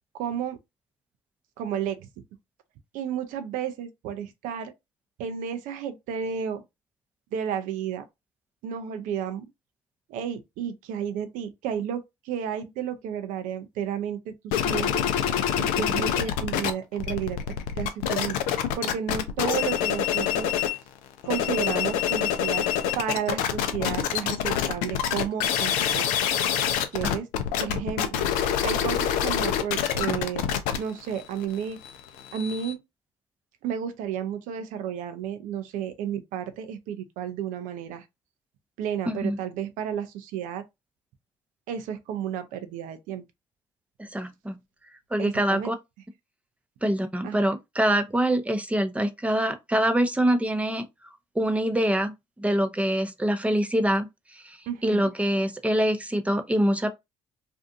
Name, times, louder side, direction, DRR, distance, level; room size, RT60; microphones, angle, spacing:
voice 1, 0.1-0.6 1.6-2.1 2.9-4.7 5.2-6.6 7.3-8.0 8.6-9.5 10.1-15.1 15.6-17.4 17.8-18.4 18.8-20.5 21.3-22.6 23.0-26.1 26.9-27.3 27.6-28.3 28.6-30.5 30.8-31.8 32.3-32.8 33.6-38.1 38.8-40.6 41.7-43.2 45.2-45.7 47.2-47.5 54.7-55.1, right 8 dB, 70° right, 0.5 m, -32 dB
sound 1, 14.5-16.7 17.0-20.8 21.2-32.7, left 9 dB, 75° left, 0.5 m, -26 dB
voice 2, 39.1-39.4 44.0-44.6 45.1-45.7 46.8-50.8 51.4-54.6 54.8-56.9, right 1 dB, 10° right, 0.6 m, -25 dB
2.6 x 2.4 x 2.4 m
hypercardioid pair, 55°, 14 cm